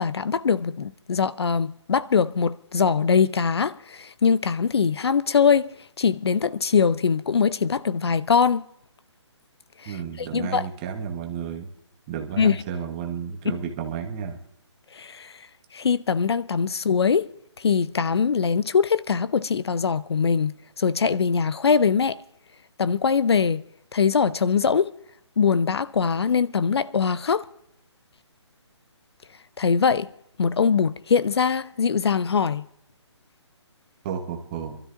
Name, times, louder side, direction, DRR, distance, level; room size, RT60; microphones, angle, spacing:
voice 1, 0.0-8.6 9.8-10.6 12.4-12.6 14.9-15.5 15.7-17.3 17.6-22.2 22.8-23.6 23.9-24.9 25.4-27.5 29.6-30.1 30.4-32.6, left 6 dB, 60° left, 0.5 m, -22 dB
voice 2, 9.9-11.7 12.1-14.4 34.0-34.8, right 7 dB, 15° right, 1.0 m, -32 dB
27.5 x 13.0 x 2.5 m
hypercardioid pair, 170°, 15 cm